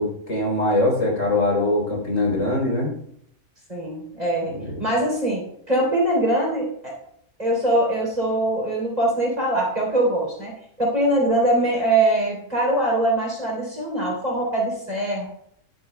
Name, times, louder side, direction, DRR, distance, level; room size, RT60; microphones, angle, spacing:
voice 1, 0.0-2.9, left 2 dB, 60° left, -2 dB, 4.2 m, -22 dB
voice 2, 3.7-5.4 5.7-6.9 7.4-10.5 10.8-15.3, right 1 dB, 25° right, -3 dB, 3.5 m, -22 dB
15.0 x 11.0 x 2.3 m, 0.69 s
omnidirectional pair, 1.5 m